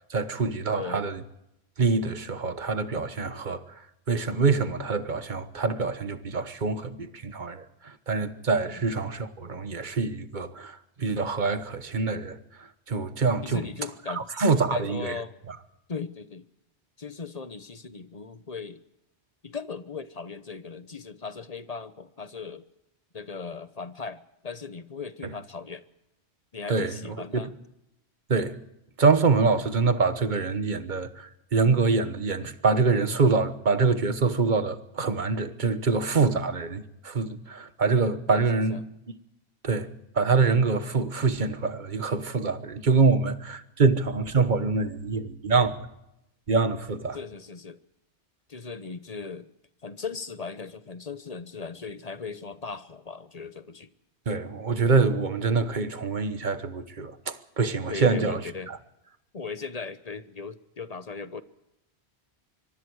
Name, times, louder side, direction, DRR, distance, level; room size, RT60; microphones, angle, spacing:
voice 1, 0.1-1.2 1.8-3.6 4.1-13.6 14.1-15.1 15.5-15.6 26.7-26.9 27.3-27.4 28.3-28.5 29.0-38.8 39.6-45.9 46.5-47.2 54.3-58.4 58.7-58.8, right 4 dB, 45° right, 1.4 m, -25 dB
voice 2, 0.7-1.1 8.7-8.8 13.4-15.3 15.9-16.5 17.0-18.8 19.4-22.6 23.1-25.8 26.5-27.5 38.3-38.8 47.1-47.8 48.5-49.5 49.8-53.9 57.9-58.7 59.3-61.4, left 5 dB, 40° left, 1.0 m, -38 dB
24.5 x 23.5 x 4.8 m
omnidirectional pair, 1.1 m